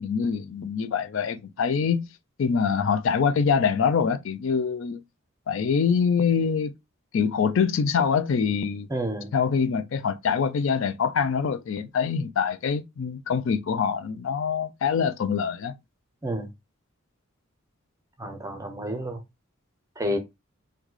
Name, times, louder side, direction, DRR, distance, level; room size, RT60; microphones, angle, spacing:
voice 1, 0.0-2.1 2.4-5.0 5.5-6.7 7.1-8.9 9.3-15.8, left 6 dB, 65° left, 0.4 m, -24 dB
voice 2, 8.9-9.3 16.2-16.5 18.2-19.2 20.0-20.2, equal, 15° right, 0.6 m, -30 dB
3.1 x 2.2 x 3.7 m
head